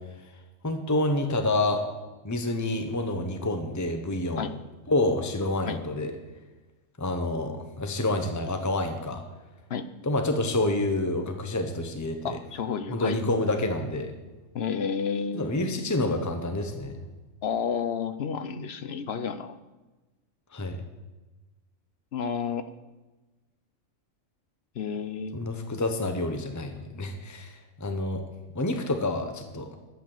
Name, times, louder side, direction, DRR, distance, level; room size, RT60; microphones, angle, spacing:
voice 1, 0.6-1.8 2.2-4.5 4.9-6.1 7.0-9.2 10.0-12.4 12.9-14.1 15.3-17.0 20.5-20.8 25.3-28.2 28.5-29.7, left 2 dB, 15° left, 5 dB, 1.0 m, -28 dB
voice 2, 12.2-13.2 14.5-15.5 17.4-19.5 22.1-22.7 24.8-25.5, left 6 dB, 60° left, 11 dB, 0.9 m, -31 dB
11.5 x 8.1 x 7.2 m, 1.2 s
omnidirectional pair, 1.3 m